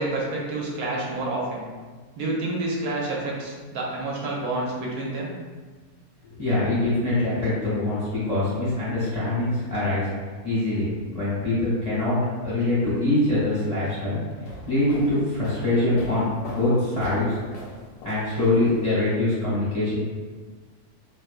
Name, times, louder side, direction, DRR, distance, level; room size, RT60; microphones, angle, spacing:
voice 1, 0.0-1.6 2.2-5.3, right 2 dB, 75° right, -3 dB, 1.0 m, -28 dB
voice 2, 6.4-10.1 10.4-10.9 11.1-12.2 12.4-14.2 14.7-17.4 18.0-19.9, left 2 dB, 35° left, -11 dB, 0.7 m, -24 dB
sound 1, 14.3-19.1, left 1 dB, 85° left, 1.1 m, -41 dB
2.8 x 2.2 x 2.4 m, 1.4 s
omnidirectional pair, 1.7 m